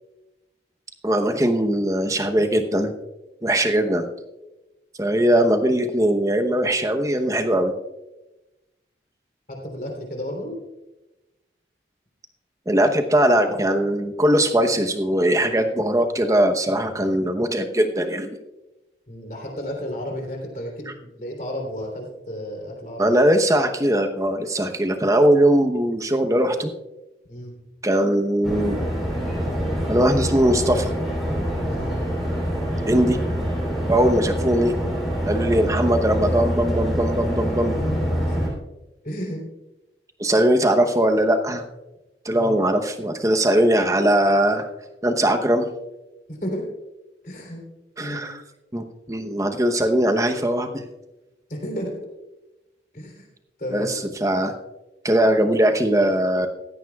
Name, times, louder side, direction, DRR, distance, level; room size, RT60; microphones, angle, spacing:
voice 1, 1.0-2.9 3.4-4.1 5.0-7.7 12.7-18.4 23.0-26.7 27.8-28.8 29.9-30.9 32.9-33.2 33.9-34.7 35.3-37.8 40.2-41.6 42.2-44.7 45.0-45.7 48.0-48.3 48.7-50.8 53.7-53.9 54.2-54.5 55.0-56.5, right 1 dB, 20° right, 6 dB, 0.9 m, -20 dB
voice 2, 9.5-10.6 19.1-23.2 27.3-27.5 31.7-31.9 37.8-38.5 39.0-39.4 40.3-40.5 42.3-42.6 46.3-46.7 47.2-47.6 48.0-48.3 51.5-51.9 52.9-53.3 53.6-54.0, equal, 45° left, 1 dB, 3.4 m, -32 dB
sound 1, 28.4-38.5, equal, ahead, 3.3 m, -25 dB
16.0 x 14.0 x 2.4 m, 1.0 s
head